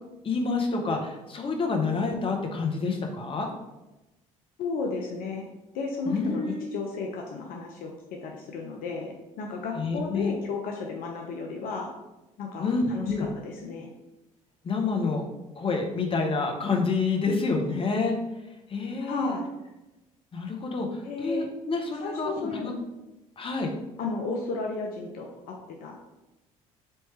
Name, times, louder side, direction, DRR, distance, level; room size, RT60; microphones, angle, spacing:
voice 1, 0.2-3.5 6.1-6.6 9.8-10.3 12.6-13.3 14.6-15.2 15.6-18.1 18.7-19.4 20.3-22.7 23.4-23.7, left 4 dB, 30° left, 2 dB, 0.9 m, -28 dB
voice 2, 4.6-5.5 5.7-7.9 8.2-11.9 12.4-13.9 19.0-19.5 21.0-21.5 22.0-22.7 24.0-26.0, left 4 dB, 60° left, 1 dB, 0.6 m, -33 dB
4.4 x 3.1 x 3.2 m, 1.0 s
hypercardioid pair, 55°, 17 cm